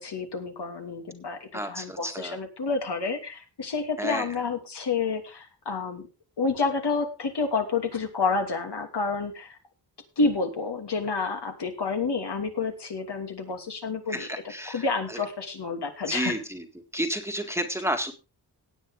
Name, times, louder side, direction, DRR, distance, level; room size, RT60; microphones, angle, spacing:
voice 1, 0.0-6.1 6.4-9.6 10.2-14.3 14.7-16.3, left 4 dB, 70° left, 4 dB, 3.0 m, -29 dB
voice 2, 1.5-2.4 4.0-4.3 14.1-14.9 16.1-16.6 16.9-18.1, equal, 5° right, 4 dB, 1.8 m, -31 dB
17.5 x 8.9 x 3.7 m, 0.29 s
wide cardioid pair, 145°, 42 cm